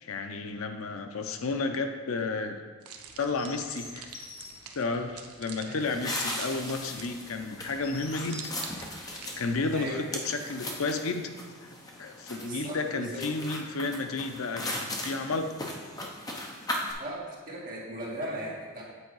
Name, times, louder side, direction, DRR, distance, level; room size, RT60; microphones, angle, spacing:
voice 1, 0.0-2.6 3.2-4.1 4.8-8.6 9.4-11.3 11.6-11.7 12.0-15.5, left 3 dB, 65° left, 6 dB, 0.6 m, -32 dB
sound 1, 2.8-7.4 8.2-9.4, right 6 dB, 80° right, 0.7 m, -46 dB
Chirp tweet, 2.9-9.6, left 3 dB, 85° left, 1.9 m, -49 dB
sound 2, 5.8-16.9, left 1 dB, 15° left, 0.7 m, -38 dB
voice 2, 12.4-13.2 17.0-17.2 17.5-18.8, right 1 dB, 40° right, -5 dB, 1.7 m, -37 dB
8.1 x 4.6 x 4.7 m, 1.4 s
head